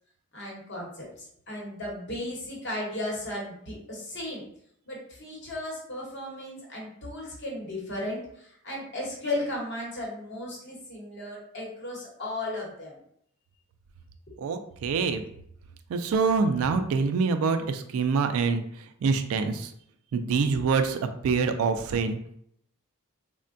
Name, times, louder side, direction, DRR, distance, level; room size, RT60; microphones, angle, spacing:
voice 1, 0.3-4.4 4.9-13.0 14.3-14.4, left 1 dB, 50° left, -2 dB, 0.9 m, -35 dB
voice 2, 14.4-15.2 15.9-18.6 19.0-19.7 20.1-22.2, right 5 dB, 75° right, 8 dB, 0.3 m, -25 dB
3.3 x 2.1 x 2.5 m, 0.69 s
head